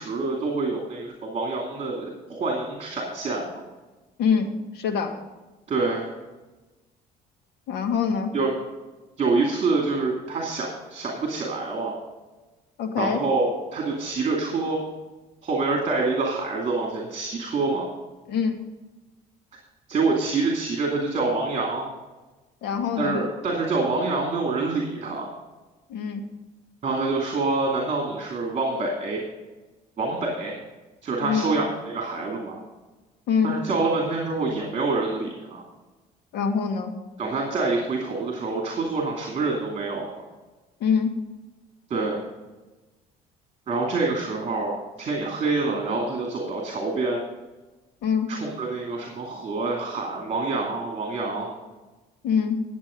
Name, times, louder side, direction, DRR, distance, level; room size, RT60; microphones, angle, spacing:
voice 1, 0.0-3.6 5.7-6.1 8.3-8.5 9.2-12.0 13.0-14.8 15.4-17.9 19.9-21.9 23.0-25.3 26.8-29.2 30.0-30.5 31.0-32.6 33.4-35.6 37.2-40.1 41.9-42.2 43.7-47.2 48.3-51.5, right 3 dB, 40° right, 0 dB, 2.4 m, -26 dB
voice 2, 4.7-5.1 7.7-8.3 12.8-13.2 18.3-18.5 22.6-23.2 25.9-26.2 31.2-31.5 33.3-33.5 36.3-36.9 40.8-41.1 48.0-48.3 52.2-52.6, left 6 dB, 75° left, 5 dB, 1.7 m, -24 dB
11.0 x 7.8 x 5.1 m, 1.2 s
cardioid pair, 110°, 17 cm